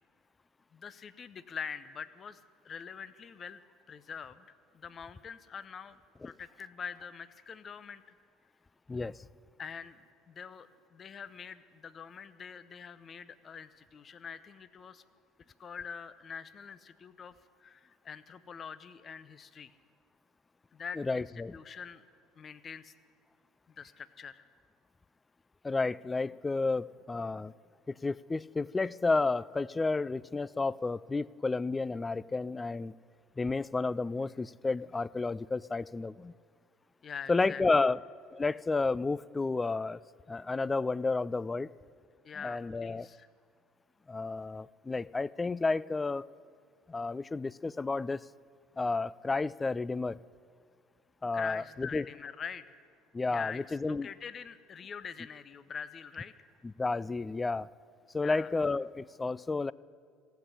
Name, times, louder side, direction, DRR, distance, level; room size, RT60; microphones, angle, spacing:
voice 1, 0.7-2.4 2.6-3.6 3.9-6.0 6.2-8.0 9.6-15.0 15.6-17.3 17.6-19.7 20.7-22.0 22.4-22.9 23.7-24.4 37.0-37.6 42.2-43.3 51.3-52.7 53.3-56.5 58.2-58.5, left 6 dB, 40° left, 15 dB, 0.7 m, -44 dB
voice 2, 21.0-21.5 25.6-27.5 27.9-32.9 33.4-36.3 37.3-38.0 38.3-40.0 40.3-41.7 42.4-43.1 44.1-46.3 46.9-48.2 48.8-50.2 51.2-52.1 53.1-54.1 56.8-57.7 58.1-59.7, left 3 dB, 20° left, 21 dB, 0.3 m, -31 dB
15.5 x 8.1 x 10.0 m, 2.1 s
hypercardioid pair, 70°, 0 cm